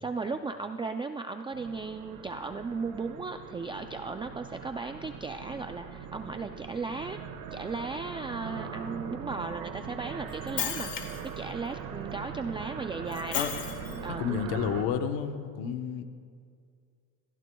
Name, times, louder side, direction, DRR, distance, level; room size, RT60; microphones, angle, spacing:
voice 1, 0.0-7.2 7.5-13.5 14.0-14.4, right 4 dB, 15° right, 6 dB, 0.4 m, -36 dB
sound 1, 1.5-14.8, right 7 dB, 80° right, 1.5 m, -41 dB
Shatter, 10.3-11.3 13.1-14.1, left 9 dB, 60° left, 2.2 m, -34 dB
voice 2, 13.9-16.0, left 7 dB, 85° left, 7 dB, 1.1 m, -31 dB
28.0 x 14.5 x 2.3 m, 2.2 s
cardioid pair, 115°, 38 cm